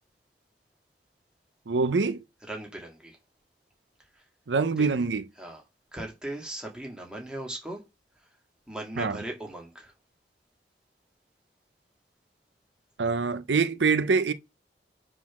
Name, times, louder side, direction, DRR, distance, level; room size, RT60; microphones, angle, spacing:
voice 1, 1.7-2.2 4.5-5.2 9.0-9.2 13.0-14.3, right 4 dB, 90° right, 0.6 m, -24 dB
voice 2, 2.5-3.2 4.1-4.3 4.8-4.9 5.4-5.6 5.9-7.8 8.1-8.4 8.7-9.9, right 1 dB, 5° right, 2.2 m, -38 dB
7.1 x 3.9 x 5.9 m
head